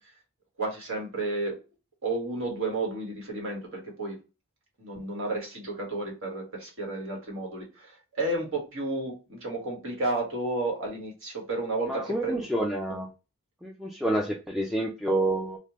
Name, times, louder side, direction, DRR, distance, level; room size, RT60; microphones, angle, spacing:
voice 1, 0.6-1.6 2.0-4.2 4.8-12.4, right 2 dB, 65° right, 0 dB, 1.4 m, -32 dB
voice 2, 11.9-13.1 13.6-15.6, right 1 dB, ahead, -2 dB, 0.3 m, -28 dB
3.2 x 2.2 x 2.9 m, 0.30 s
head